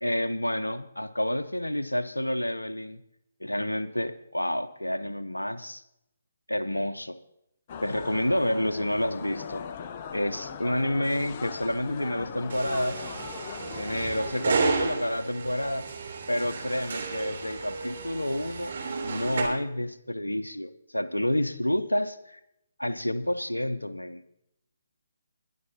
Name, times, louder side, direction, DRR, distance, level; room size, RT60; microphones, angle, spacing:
voice 1, 0.0-3.0 3.4-5.8 6.5-7.2 7.8-9.6 10.1-13.0 13.7-15.9 16.3-18.7 19.0-22.4 22.8-24.2, left 1 dB, 90° left, 12 dB, 0.7 m, -29 dB
sound 1, 7.7-14.8, left 7 dB, 35° left, 0.7 m, -40 dB
sound 2, 12.5-19.4, right 4 dB, 55° right, 3.4 m, -32 dB
21.5 x 11.0 x 2.8 m, 0.81 s
figure-of-eight pair, 140°, 0 cm